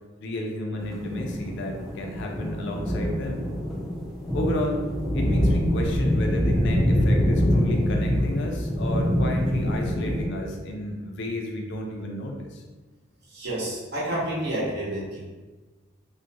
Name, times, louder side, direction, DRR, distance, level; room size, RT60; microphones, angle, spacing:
voice 1, 0.2-3.4 4.3-12.6, left 1 dB, 65° left, 1 dB, 0.4 m, -32 dB
sound 1, 0.8-10.3, equal, ahead, 0.4 m, -25 dB
voice 2, 13.3-15.2, right 1 dB, 55° right, -6 dB, 0.8 m, -29 dB
2.4 x 2.1 x 2.7 m, 1.3 s
head